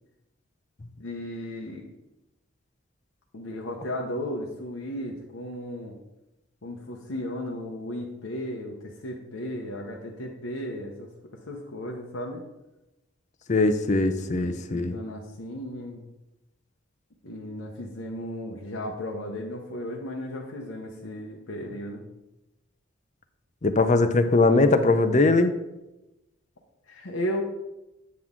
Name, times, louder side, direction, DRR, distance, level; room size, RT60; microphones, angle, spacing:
voice 1, 1.0-1.8 3.3-6.0 6.6-12.4 14.2-16.0 17.2-22.0 26.9-27.4, left 1 dB, 80° left, -1 dB, 0.9 m, -35 dB
voice 2, 13.5-15.0 23.6-25.6, left 3 dB, 35° left, 9 dB, 0.5 m, -21 dB
8.5 x 6.0 x 3.7 m, 0.97 s
head